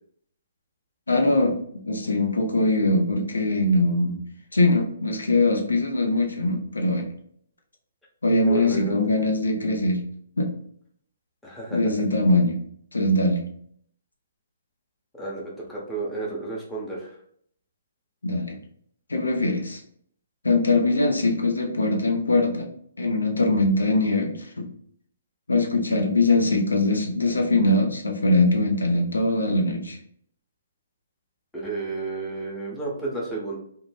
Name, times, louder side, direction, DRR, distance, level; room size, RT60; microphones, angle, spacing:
voice 1, 1.1-1.6 1.8-4.2 4.5-7.1 8.2-10.0 10.4-10.5 11.7-12.6 12.9-13.4 18.2-18.6 19.1-19.8 20.4-22.7 23.0-24.7 25.5-30.0, left 2 dB, 80° left, 2 dB, 0.7 m, -22 dB
voice 2, 8.5-9.1 11.4-11.9 15.1-17.1 31.5-33.6, right 3 dB, 5° left, -5 dB, 0.8 m, -32 dB
2.5 x 2.2 x 3.2 m, 0.63 s
figure-of-eight pair, 130°, 0 cm